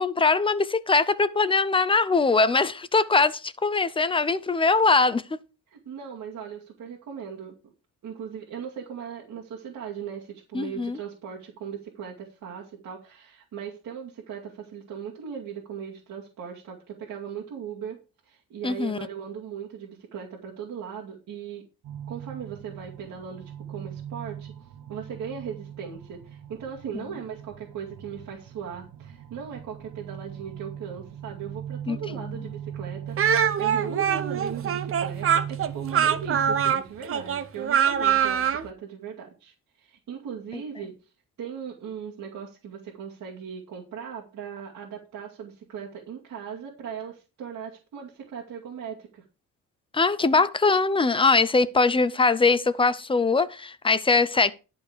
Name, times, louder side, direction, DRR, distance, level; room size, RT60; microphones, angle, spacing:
voice 1, 0.0-5.4 10.5-11.0 18.6-19.0 26.9-27.0 31.9-32.3 49.9-54.5, left 4 dB, 15° left, 0.6 m, -22 dB
voice 2, 5.7-7.5 8.0-21.7 22.1-41.0 41.4-49.2, right 7 dB, 60° right, 2.4 m, -38 dB
sound 1, 21.8-36.7, right 9 dB, 80° right, 1.1 m, -39 dB
Speech, 33.2-38.6, right 8 dB, 40° right, 0.8 m, -23 dB
11.5 x 5.3 x 6.5 m
cardioid pair, 160°, 33 cm